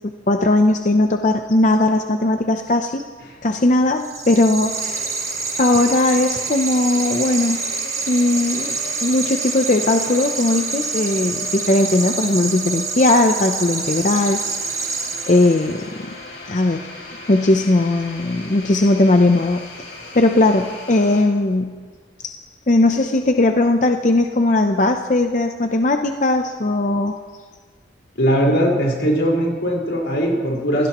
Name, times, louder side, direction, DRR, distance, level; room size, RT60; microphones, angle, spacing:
voice 1, 0.3-3.0 3.4-5.1 5.6-7.6 8.1-14.4 14.7-14.8 15.3-15.9 16.5-16.8 17.3-19.9 20.1-21.8 22.2-22.3 22.7-27.1, left 2 dB, 40° left, 5 dB, 0.6 m, -18 dB
sound 1, 4.0-15.8, right 4 dB, 15° right, 0.9 m, -27 dB
sound 2, 4.6-21.2, left 2 dB, 60° left, 3.6 m, -37 dB
voice 2, 28.2-30.9, equal, 85° left, -2 dB, 4.7 m, -19 dB
28.0 x 17.0 x 3.0 m, 1.5 s
head